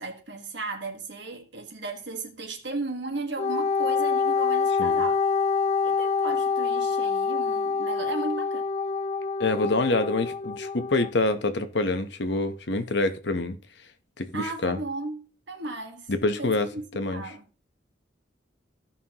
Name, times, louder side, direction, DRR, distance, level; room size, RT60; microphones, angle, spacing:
voice 1, 0.0-5.2 5.8-8.7 14.3-16.1 16.4-17.5, right 2 dB, 70° right, 1.4 m, -35 dB
Wind instrument woodwind instrument, 3.4-11.1, left 5 dB, 35° left, 0.3 m, -26 dB
voice 2, 9.4-13.6 14.2-14.8 16.1-16.7 16.9-17.2, left 2 dB, 65° left, 0.9 m, -26 dB
15.0 x 5.6 x 2.9 m
head